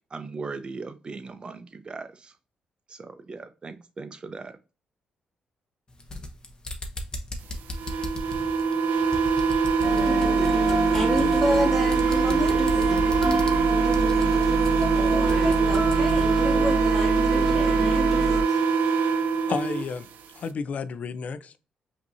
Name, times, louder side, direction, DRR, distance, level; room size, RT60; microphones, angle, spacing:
voice 1, 0.1-2.3 2.9-4.6, right 4 dB, 35° right, 0.6 m, -38 dB
sound 1, 5.9-16.3, left 1 dB, 30° left, 0.9 m, -37 dB
sound 2, 7.7-19.8, right 5 dB, 90° right, 0.5 m, -23 dB
sound 3, 9.8-18.4, right 1 dB, 10° right, 1.9 m, -27 dB
voice 2, 10.9-13.0 14.9-18.6, equal, 10° left, 2.2 m, -31 dB
voice 3, 19.5-20.1 20.4-21.6, left 5 dB, 60° left, 0.4 m, -31 dB
5.3 x 2.8 x 2.6 m
cardioid pair, 90°, 3 cm